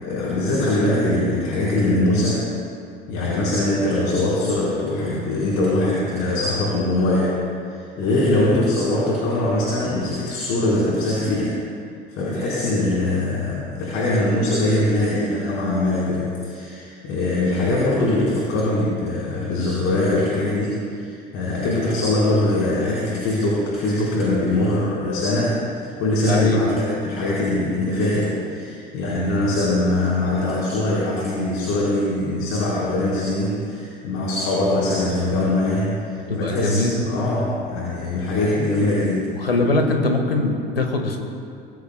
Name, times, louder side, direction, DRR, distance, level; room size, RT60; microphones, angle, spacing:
voice 1, 0.0-2.4 3.1-7.4 7.7-11.5 12.1-39.3, left 1 dB, 50° left, -6 dB, 4.3 m, -22 dB
voice 2, 26.3-26.8 36.3-37.0 39.3-41.2, left 2 dB, 80° left, 4 dB, 1.8 m, -22 dB
24.5 x 21.0 x 2.3 m, 2.4 s
figure-of-eight pair, 70°, 29 cm